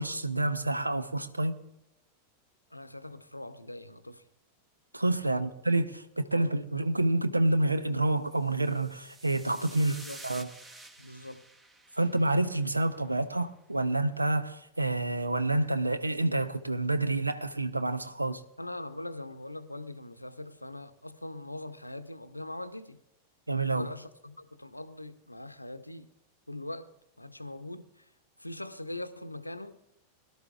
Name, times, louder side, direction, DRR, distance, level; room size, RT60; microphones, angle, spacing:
voice 1, 0.0-1.6 4.9-10.0 10.2-10.5 12.0-18.4 23.5-23.9, right 2 dB, 85° right, 0.8 m, -28 dB
voice 2, 2.7-4.2 5.2-5.5 6.3-6.5 9.7-10.2 11.0-11.5 18.6-23.0 23.7-26.1 26.5-28.1 28.4-29.8, left 1 dB, 85° left, 0.7 m, -42 dB
sound 1, 8.4-12.9, right 2 dB, 15° right, 1.1 m, -50 dB
23.0 x 12.0 x 2.4 m
figure-of-eight pair, 90°, 0 cm